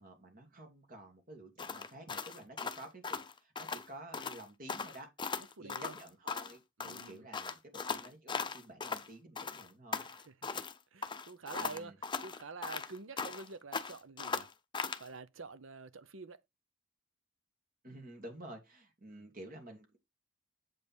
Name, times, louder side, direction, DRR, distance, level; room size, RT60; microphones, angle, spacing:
voice 1, 0.0-5.1 5.6-10.0 11.5-12.0 17.8-20.0, right 1 dB, 45° right, 2.8 m, -51 dB
sound 1, 1.6-3.9 4.1-4.4 4.7-6.6 6.8-9.1 9.4-10.7 11.0-13.5 13.7-15.1, left 5 dB, 25° left, 0.7 m, -39 dB
voice 2, 5.6-6.0 6.8-7.3 10.0-10.6 10.9-14.5 15.0-16.4 19.1-19.3, right 4 dB, 80° right, 0.8 m, -48 dB
7.9 x 5.4 x 4.4 m
head